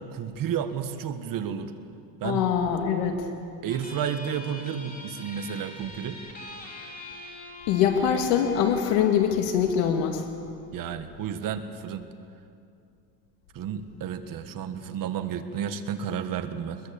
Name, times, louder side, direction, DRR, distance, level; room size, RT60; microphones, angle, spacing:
voice 1, 0.1-1.7 2.2-2.4 3.6-6.2 10.7-12.1 13.5-16.8, right 8 dB, 45° right, 8 dB, 1.6 m, -31 dB
voice 2, 2.2-3.3 7.7-10.3, left 8 dB, 75° left, 5 dB, 2.1 m, -23 dB
sound 1, 3.7-10.7, left 2 dB, 20° left, 3.2 m, -45 dB
23.5 x 21.5 x 8.6 m, 2.5 s
cardioid pair, 140°, 45 cm